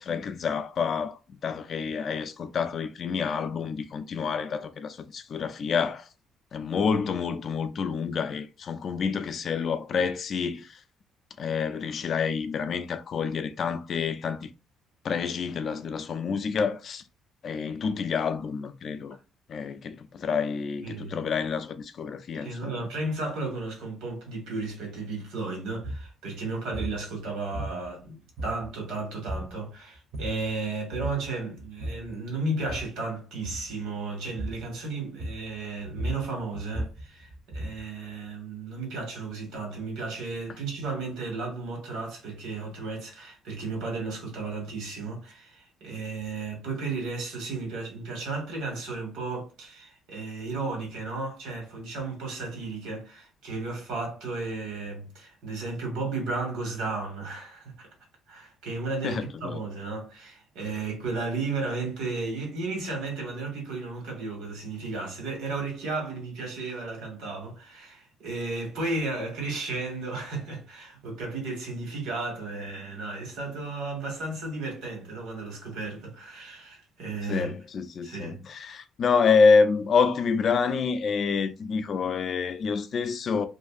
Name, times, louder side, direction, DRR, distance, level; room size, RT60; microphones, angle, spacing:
voice 1, 0.0-6.1 6.5-10.8 11.4-14.5 15.0-17.0 17.4-19.2 19.5-22.9 59.0-59.6 77.3-83.5, left 5 dB, 40° left, 0.3 m, -27 dB
voice 2, 20.8-21.3 22.4-57.9 58.3-77.5 78.0-78.4, right 3 dB, 85° right, 1.4 m, -34 dB
sound 1, 25.8-26.1 26.7-27.0 27.5-28.0 28.4-28.9 29.3-29.6 30.0-30.5 30.9-31.3 31.6-32.1 32.6-33.0 33.4-33.7 34.4-34.7 35.2-35.6 35.8-37.9, right 1 dB, 40° right, 0.6 m, -35 dB
2.6 x 2.5 x 2.4 m
cardioid pair, 150°, 0 cm